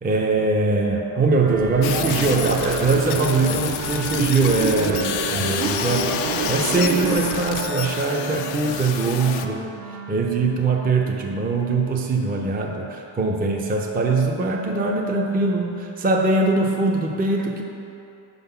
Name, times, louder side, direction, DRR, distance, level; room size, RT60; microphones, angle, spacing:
voice 1, 0.0-6.1 6.5-9.7 10.1-17.6, right 3 dB, 20° right, 1 dB, 0.6 m, -22 dB
sound 1, 1.4-7.2, right 6 dB, 45° right, 0.8 m, -28 dB
Wind instrument woodwind instrument, 1.4-10.4, right 4 dB, 85° right, 0.6 m, -36 dB
sound 2, 1.8-9.5, left 9 dB, 85° left, 0.5 m, -29 dB
5.1 x 4.0 x 5.6 m, 2.8 s
supercardioid pair, 70°, 49 cm